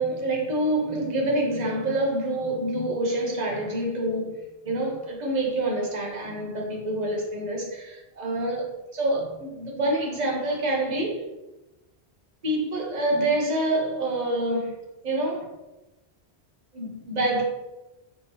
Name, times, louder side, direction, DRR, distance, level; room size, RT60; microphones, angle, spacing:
voice 1, 0.0-11.2 12.4-15.5 16.7-17.4, right 1 dB, 45° right, -2 dB, 0.8 m, -27 dB
3.5 x 2.9 x 2.9 m, 1.0 s
omnidirectional pair, 1.1 m